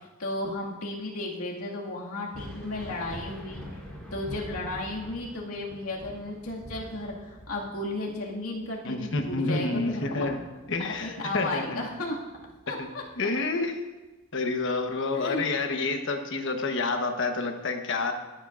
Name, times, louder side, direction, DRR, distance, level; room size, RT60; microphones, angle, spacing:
voice 1, 0.2-3.6 4.1-10.2 10.8-12.2 12.7-13.0 15.1-15.4, left 2 dB, 80° left, -2 dB, 2.1 m, -34 dB
Thunder, 2.3-11.5 11.9-13.1 14.7-14.8 15.6-15.7, equal, 5° left, 4.8 m, -44 dB
voice 2, 8.8-10.4 10.7-11.8 12.8-13.8 14.3-18.1, left 3 dB, 60° left, 5 dB, 1.1 m, -29 dB
24.5 x 8.9 x 2.5 m, 1.2 s
head